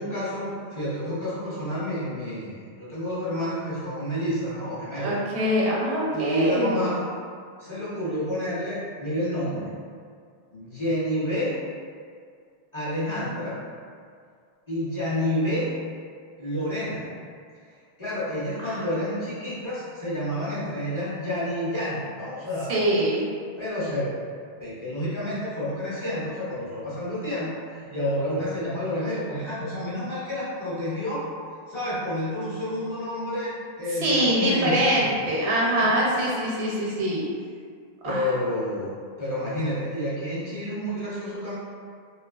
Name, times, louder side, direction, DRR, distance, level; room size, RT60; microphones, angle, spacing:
voice 1, 0.0-5.2 6.1-7.0 7.6-9.7 10.5-11.5 12.7-13.5 14.7-15.7 16.4-17.1 18.0-22.8 23.6-24.1 24.6-31.2 31.7-35.1 35.7-35.9 38.0-38.9 39.2-41.6, left 1 dB, 35° left, -11 dB, 0.6 m, -29 dB
voice 2, 5.0-6.7 18.6-18.8 22.7-23.2 34.0-37.3 38.0-38.2, equal, 85° right, -5 dB, 0.9 m, -23 dB
2.6 x 2.4 x 2.3 m, 2.1 s
omnidirectional pair, 1.1 m